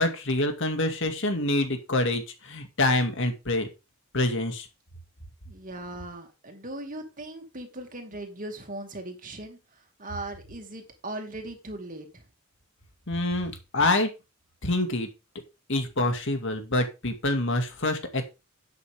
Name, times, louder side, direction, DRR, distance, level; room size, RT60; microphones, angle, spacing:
voice 1, 0.0-3.7 4.1-4.7 13.1-14.1 14.6-15.1 15.7-18.2, left 2 dB, 60° left, 6 dB, 2.4 m, -26 dB
voice 2, 5.5-12.3, right 1 dB, 40° right, 4 dB, 2.6 m, -39 dB
12.0 x 8.6 x 3.7 m, 0.27 s
head